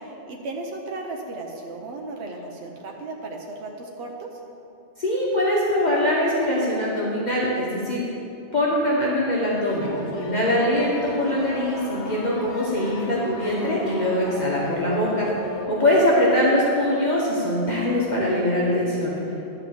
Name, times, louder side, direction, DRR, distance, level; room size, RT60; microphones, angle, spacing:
voice 1, 0.0-4.4 15.8-16.1, right 2 dB, 75° right, 1 dB, 1.1 m, -35 dB
voice 2, 5.0-8.0 8.5-15.3 15.7-19.1, left 1 dB, 40° left, -6 dB, 1.3 m, -22 dB
sound 1, 9.7-15.7, left 1 dB, 75° left, 1.3 m, -37 dB
11.5 x 4.0 x 7.6 m, 2.9 s
omnidirectional pair, 1.2 m